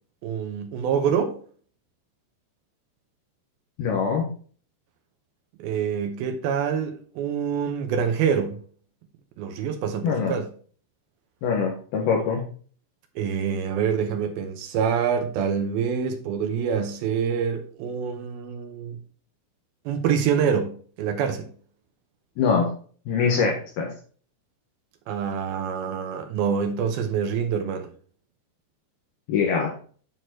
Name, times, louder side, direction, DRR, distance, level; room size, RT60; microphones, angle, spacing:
voice 1, 0.2-1.4 5.6-8.6 9.4-10.5 13.2-19.0 19.9-21.5 25.1-27.9, right 7 dB, 75° right, 2.3 m, -26 dB
voice 2, 3.8-4.3 10.0-10.3 11.4-12.5 22.4-22.7 23.1-23.9 29.3-29.7, left 5 dB, 70° left, 2.9 m, -23 dB
8.9 x 4.8 x 4.5 m
omnidirectional pair, 5.2 m